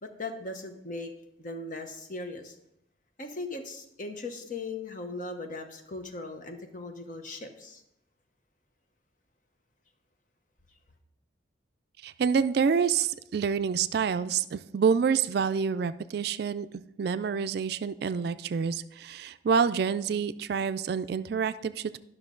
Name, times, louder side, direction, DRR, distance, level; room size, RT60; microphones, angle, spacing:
voice 1, 0.0-1.1 1.4-2.5 3.2-7.8, left 2 dB, 45° left, 5 dB, 0.9 m, -38 dB
voice 2, 12.0-16.7 17.0-22.0, right 6 dB, 55° right, 12 dB, 0.3 m, -27 dB
11.0 x 6.1 x 3.8 m, 0.81 s
head